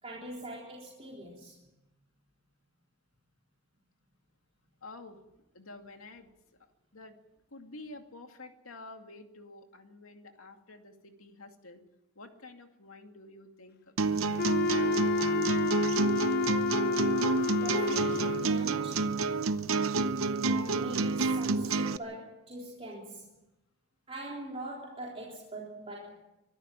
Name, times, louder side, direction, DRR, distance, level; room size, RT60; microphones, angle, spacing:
voice 1, 0.0-1.6 17.6-19.1 20.4-23.3 24.1-26.2, right 1 dB, 30° right, -3 dB, 3.7 m, -42 dB
voice 2, 4.8-5.2 5.5-6.3 6.9-7.2 7.5-11.8 12.2-14.9 17.2-17.4, left 2 dB, 85° left, 5 dB, 2.3 m, -50 dB
sound 1, 14.0-22.0, right 3 dB, 75° right, 0.8 m, -29 dB
Wind instrument woodwind instrument, 14.4-18.7, left 4 dB, 50° left, 0.7 m, -30 dB
24.5 x 12.5 x 9.0 m, 0.93 s
head